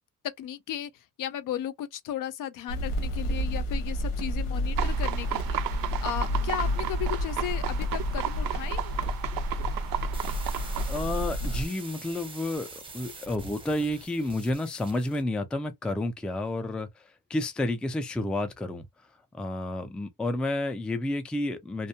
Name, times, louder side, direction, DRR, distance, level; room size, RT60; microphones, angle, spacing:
voice 1, 0.4-0.9 1.2-8.9, left 11 dB, 65° left, 0.6 m, -35 dB
sound 1, 2.7-11.7, equal, 90° left, 1.0 m, -30 dB
sound 2, 4.8-11.0, right 14 dB, 85° right, 0.5 m, -34 dB
sound 3, 10.1-15.3, right 3 dB, 15° right, 0.7 m, -45 dB
voice 2, 10.8-16.9 17.3-18.8 19.3-21.9, left 1 dB, 5° left, 0.3 m, -30 dB
2.6 x 2.1 x 2.7 m
cardioid pair, 150°, 34 cm